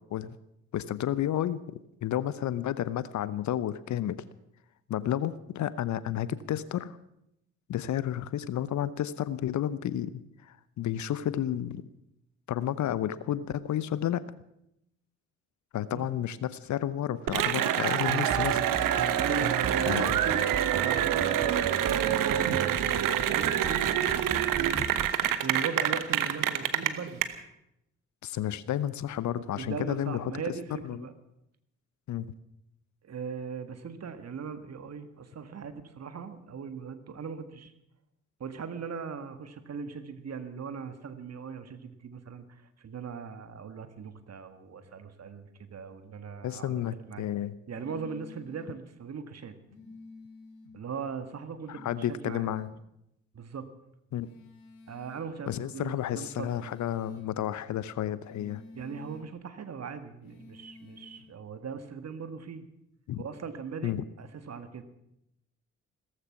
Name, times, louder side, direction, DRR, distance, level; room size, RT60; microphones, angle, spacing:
voice 1, 0.7-4.2 4.9-7.0 7.7-11.8 12.5-14.2 15.7-18.7 19.9-20.2 28.2-30.3 30.8-31.0 32.1-32.3 46.4-47.5 51.7-52.7 54.1-54.3 55.5-58.6 63.1-63.2 63.8-64.0, left 11 dB, 50° left, 17 dB, 0.8 m, -31 dB
Cheering / Applause, 17.3-27.2, right 10 dB, 60° right, 1.2 m, -26 dB
sound 1, 18.1-25.1, right 6 dB, 25° right, 0.8 m, -38 dB
voice 2, 19.1-21.4 21.7-23.9 24.4-24.8 25.4-27.2 29.5-31.1 33.0-37.7 38.4-46.7 47.1-47.2 47.7-49.5 50.7-52.5 53.3-53.7 54.9-56.6 58.7-62.7 63.2-64.8, right 5 dB, 45° right, 10 dB, 1.7 m, -39 dB
sound 2, 47.7-48.7 49.7-50.7 51.7-52.7 54.2-55.3 56.2-57.3 58.2-59.3 60.2-61.3, left 3 dB, 70° left, 2.4 m, -50 dB
17.0 x 14.5 x 6.0 m, 0.81 s
figure-of-eight pair, 40°, 37 cm